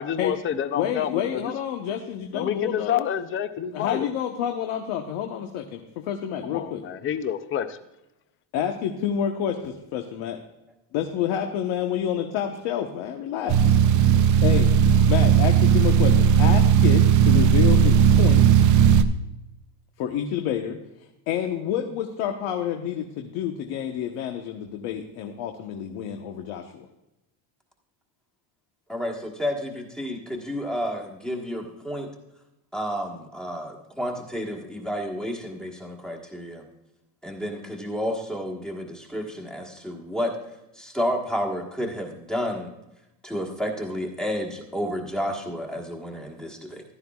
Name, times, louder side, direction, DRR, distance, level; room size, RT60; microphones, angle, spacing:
voice 1, 0.0-1.4 2.3-4.1 6.4-7.7, left 9 dB, 25° left, 11 dB, 0.5 m, -28 dB
voice 2, 0.7-3.1 3.7-5.8 6.1-6.8 8.5-10.4 10.9-13.6 14.4-14.7 15.1-18.4 20.0-20.8 21.3-26.9, left 9 dB, 70° left, 4 dB, 1.2 m, -28 dB
sound 1, 13.5-19.0, right 7 dB, 40° right, 0.6 m, -17 dB
voice 3, 28.9-32.1 32.7-36.6 37.2-40.3 40.8-42.7 43.2-46.8, equal, ahead, 0 dB, 1.3 m, -31 dB
15.0 x 12.5 x 2.4 m, 0.93 s
cardioid pair, 165°, 49 cm